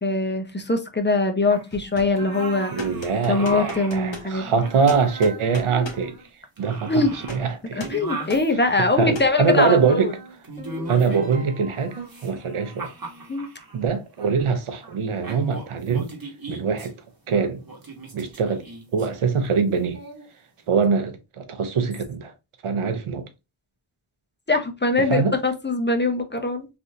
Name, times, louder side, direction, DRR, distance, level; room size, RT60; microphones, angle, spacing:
voice 1, 0.0-2.7 3.3-4.5 5.7-5.8 6.9-7.1 7.7-10.1 13.3-13.5 24.5-26.7, left 2 dB, 20° left, 0.6 m, -22 dB
sound 1, 1.5-1.7 2.1-4.1 4.4-6.3 6.6-8.5 9.4-11.4 11.8-13.8 14.2-14.4 14.8-15.0 15.2-16.9 17.7-19.1 19.9-20.3, right 3 dB, 45° right, 1.1 m, -38 dB
sound 2, 1.7-2.2 2.8-4.3 4.9-6.1 7.2-7.5 7.8-8.0 8.3-8.5 9.2-9.4, left 2 dB, 65° left, 1.1 m, -37 dB
voice 2, 2.7-6.2 6.6-7.0 7.3-7.8 8.8-10.1 10.9-12.9 13.7-16.1 16.5-16.9 17.3-17.6 18.1-18.6 18.9-20.0 20.7-22.3 22.6-23.3 25.1-25.3, right 5 dB, 90° right, 0.7 m, -23 dB
sound 3, 10.6-12.0, equal, 15° right, 1.1 m, -37 dB
3.3 x 2.6 x 2.6 m
wide cardioid pair, 50°, 49 cm